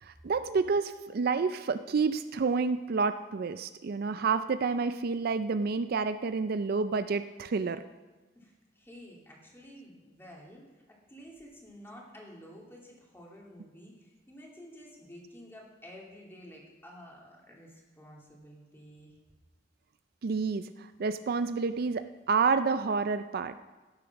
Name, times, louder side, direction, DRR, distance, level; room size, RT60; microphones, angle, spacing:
voice 1, 0.0-7.8 20.2-23.6, right 4 dB, 55° right, 11 dB, 0.4 m, -29 dB
voice 2, 8.3-19.2, equal, 15° left, -2 dB, 2.7 m, -51 dB
15.5 x 7.3 x 5.9 m, 1.2 s
head